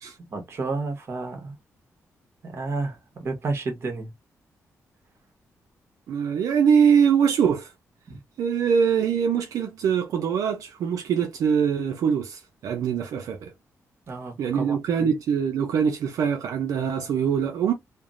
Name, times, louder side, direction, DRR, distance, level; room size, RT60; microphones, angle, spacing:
voice 1, 0.3-1.6 2.4-4.1 8.1-8.2 14.1-15.1, right 3 dB, 45° right, 1.1 m, -31 dB
voice 2, 6.1-7.7 8.4-13.5 14.4-17.7, right 7 dB, 80° right, 0.5 m, -23 dB
3.2 x 2.0 x 2.5 m
cardioid pair, 120°, 6 cm